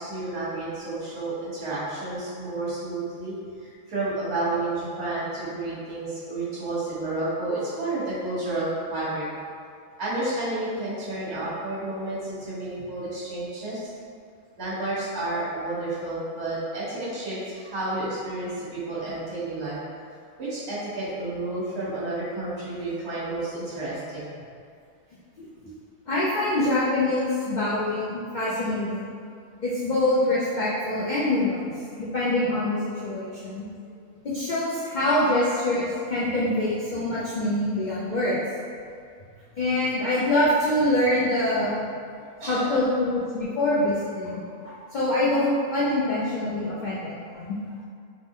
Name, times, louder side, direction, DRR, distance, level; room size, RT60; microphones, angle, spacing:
voice 1, 0.0-9.2 10.0-13.9 14.6-19.8 20.4-24.3 42.4-42.8, right 2 dB, 50° right, -12 dB, 1.5 m, -31 dB
voice 2, 26.1-29.1 29.6-31.6 32.0-33.7 34.2-38.4 39.6-41.8 42.5-44.3 44.6-47.6, left 1 dB, 75° left, -8 dB, 0.4 m, -25 dB
3.5 x 2.0 x 3.6 m, 2.3 s
omnidirectional pair, 1.4 m